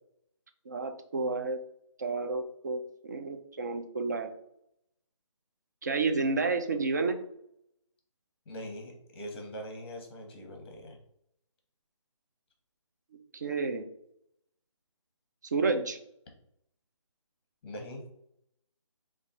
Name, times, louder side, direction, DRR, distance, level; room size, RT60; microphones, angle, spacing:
voice 1, 0.7-1.6 2.0-4.3 5.8-7.2 13.3-13.9 15.5-16.0, right 4 dB, 35° right, 7 dB, 0.4 m, -30 dB
voice 2, 8.5-11.0 17.6-18.0, equal, 20° left, 1 dB, 0.9 m, -42 dB
4.0 x 2.4 x 3.6 m, 0.74 s
figure-of-eight pair, 165°, 16 cm